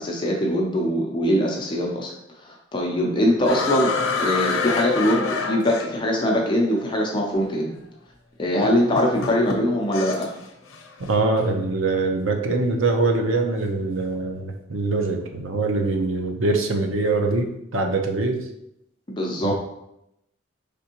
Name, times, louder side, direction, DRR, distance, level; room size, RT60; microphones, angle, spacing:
voice 1, 0.0-2.1 2.4-7.8 8.4-10.3 19.2-19.5, equal, 25° left, -1 dB, 0.6 m, -22 dB
sound 1, 3.4-6.3 7.4-7.5 8.6-10.4 10.7-11.1, left 4 dB, 90° left, 0.6 m, -27 dB
voice 2, 11.0-18.4 19.4-19.5, right 3 dB, 85° right, 3 dB, 0.7 m, -23 dB
5.2 x 3.4 x 2.9 m, 0.81 s
head